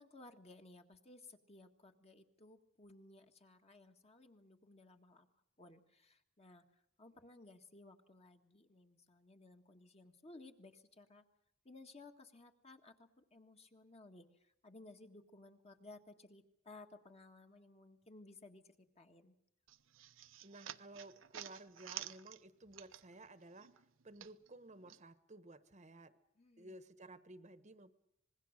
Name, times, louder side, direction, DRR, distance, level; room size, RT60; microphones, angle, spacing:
voice 1, 0.0-5.3 5.6-6.6 7.0-11.2 11.7-19.4 26.4-26.8, left 2 dB, 30° left, 5 dB, 1.7 m, -59 dB
sound 1, 19.7-23.3 23.6-25.0, right 11 dB, 75° right, 0.9 m, -50 dB
voice 2, 20.4-23.7 24.0-26.2 26.6-27.9, right 2 dB, 35° right, 12 dB, 1.2 m, -55 dB
26.0 x 21.0 x 6.5 m, 0.76 s
head